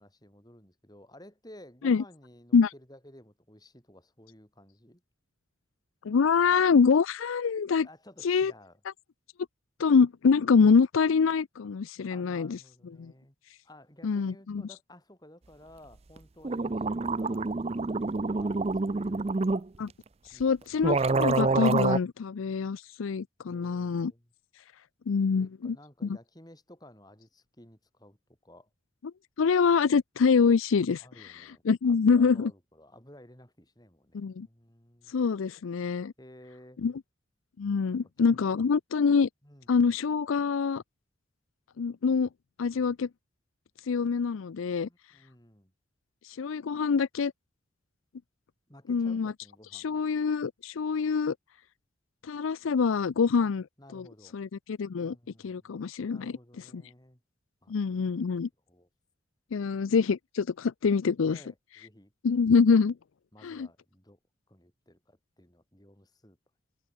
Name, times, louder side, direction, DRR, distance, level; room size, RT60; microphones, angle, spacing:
voice 1, 0.0-5.0 7.8-8.8 12.1-13.3 13.6-19.7 20.3-20.9 23.5-24.3 25.3-28.2 28.4-28.7 31.0-35.1 36.2-36.8 37.9-38.0 38.2-38.7 39.4-39.7 42.7-43.0 44.9-45.7 48.7-50.0 53.4-53.5 53.8-54.4 55.0-55.8 56.1-57.2 57.6-58.4 58.7-58.9 61.2-62.1 63.3-64.2 64.5-66.4, left 1 dB, 20° left, 4.4 m, -54 dB
voice 2, 6.0-7.9 8.2-8.5 9.8-12.6 13.0-13.1 14.0-14.6 19.8-19.9 20.3-24.1 25.1-25.8 26.0-26.2 29.0-29.1 29.4-31.0 31.7-32.5 34.1-34.5 35.1-36.1 36.8-36.9 37.6-39.3 39.7-40.8 41.8-42.3 42.6-43.1 43.9-44.9 46.4-47.3 48.9-49.3 49.7-51.3 52.2-53.6 53.9-54.1 54.3-55.1 55.4-56.4 56.7-56.8 57.7-58.5 59.5-61.4 62.2-62.9 63.4-63.7, left 5 dB, 85° left, 0.5 m, -25 dB
sound 1, 16.2-16.3 16.4-19.6 20.4-20.5 20.8-22.0, right 3 dB, 30° right, 0.4 m, -27 dB
head